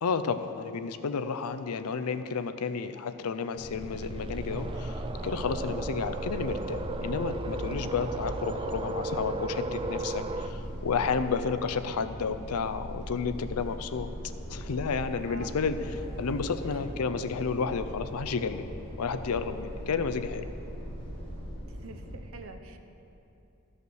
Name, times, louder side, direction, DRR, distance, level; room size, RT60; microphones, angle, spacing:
voice 1, 0.0-14.1 14.5-15.8 16.2-18.7 19.0-20.5, left 5 dB, 85° left, 10 dB, 0.5 m, -31 dB
sound 1, 3.5-22.1, equal, 25° left, 2.2 m, -39 dB
sound 2, 3.8-10.5, right 2 dB, 25° right, 0.3 m, -36 dB
voice 2, 21.6-22.8, right 3 dB, 65° right, 6 dB, 0.7 m, -47 dB
13.0 x 5.5 x 6.3 m, 2.8 s
head